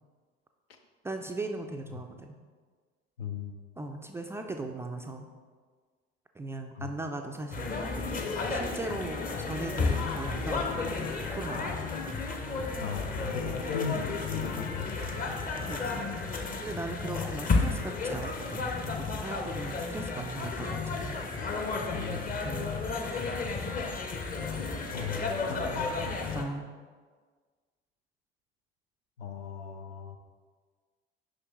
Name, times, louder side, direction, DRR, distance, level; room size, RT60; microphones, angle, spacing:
voice 1, 1.0-2.4 3.8-5.3 6.4-7.8 8.5-11.8 15.6-16.0 16.6-21.2 22.1-22.8 26.3-26.7, right 2 dB, 10° right, 4 dB, 0.3 m, -38 dB
voice 2, 3.2-3.5 6.7-6.9 12.8-15.4 22.0-22.4 24.9-26.2 29.2-30.2, left 6 dB, 75° left, 5 dB, 0.6 m, -38 dB
sound 1, 7.5-26.4, left 4 dB, 30° left, 0.7 m, -32 dB
6.4 x 5.5 x 3.0 m, 1.5 s
figure-of-eight pair, 60°, 30 cm